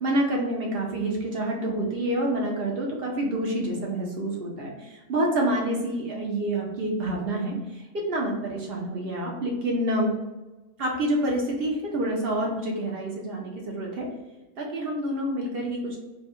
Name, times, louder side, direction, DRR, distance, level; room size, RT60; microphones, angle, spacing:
voice 1, 0.0-7.5 8.1-10.1 10.8-14.1 14.6-16.0, right 1 dB, 50° right, -2 dB, 0.8 m, -27 dB
3.4 x 2.3 x 4.3 m, 1.1 s
omnidirectional pair, 1.7 m